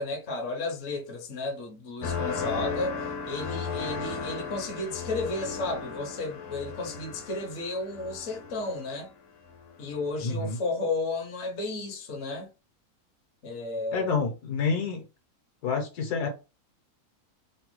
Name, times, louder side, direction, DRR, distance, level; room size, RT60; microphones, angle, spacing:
voice 1, 0.0-9.1 9.8-12.5 13.4-14.2, left 3 dB, 55° left, 1.0 m, -33 dB
sound 1, 2.0-9.1 9.5-10.0, left 5 dB, 90° left, 1.4 m, -35 dB
voice 2, 10.2-10.6 13.9-15.0 15.6-16.3, left 5 dB, 75° left, 1.4 m, -28 dB
3.1 x 2.2 x 3.0 m
omnidirectional pair, 1.7 m